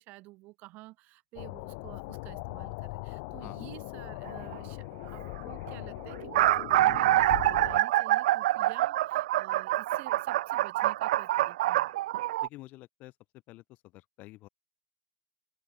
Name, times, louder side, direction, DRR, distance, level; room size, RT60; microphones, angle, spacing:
voice 1, 0.0-11.9, right 20 dB, 45° right, 3.3 m, -50 dB
sound 1, 1.4-7.8, left 30 dB, 60° left, 1.1 m, -40 dB
sound 2, 4.2-4.5 5.4-5.5 5.7-5.8 6.1-12.5, right 15 dB, 90° right, 0.9 m, -26 dB
voice 2, 12.4-13.1 13.5-14.5, left 18 dB, 40° left, 2.0 m, -49 dB
open air
supercardioid pair, 155°, 4 cm